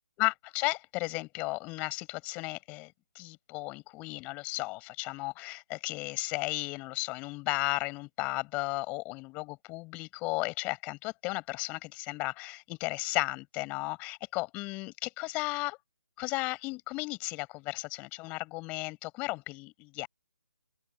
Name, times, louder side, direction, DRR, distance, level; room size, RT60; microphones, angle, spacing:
voice 1, 0.2-15.8 16.2-20.1, left 24 dB, 15° left, 6.3 m, -34 dB
open air
figure-of-eight pair, 150°, 9 cm